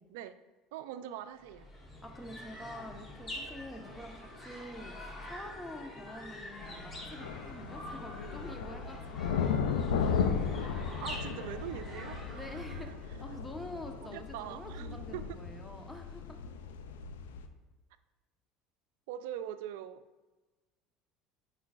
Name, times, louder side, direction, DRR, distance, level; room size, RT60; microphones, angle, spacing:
voice 1, 0.7-1.7 11.0-12.9 14.0-15.4 19.1-20.1, right 11 dB, 75° right, 13 dB, 0.3 m, -43 dB
sound 1, 1.4-12.9, left 1 dB, 35° left, 1.8 m, -46 dB
voice 2, 2.0-10.0 12.3-16.4, left 1 dB, 10° left, 5 dB, 1.0 m, -47 dB
sound 2, 6.6-17.5, left 6 dB, 85° left, 0.4 m, -36 dB
9.2 x 5.4 x 2.4 m, 1.2 s
hypercardioid pair, 80°, 0 cm